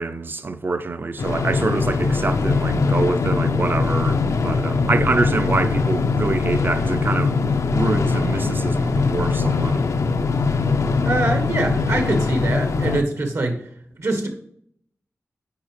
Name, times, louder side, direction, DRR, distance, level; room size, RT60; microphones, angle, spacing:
voice 1, 0.0-7.4 7.7-9.9, right 3 dB, 40° right, 0.5 m, -25 dB
sound 1, 1.2-13.0, left 4 dB, 75° left, 0.5 m, -21 dB
voice 2, 11.0-13.6 14.0-14.3, right 2 dB, 70° right, 1.3 m, -23 dB
8.4 x 4.9 x 3.0 m
wide cardioid pair, 105°, 5 cm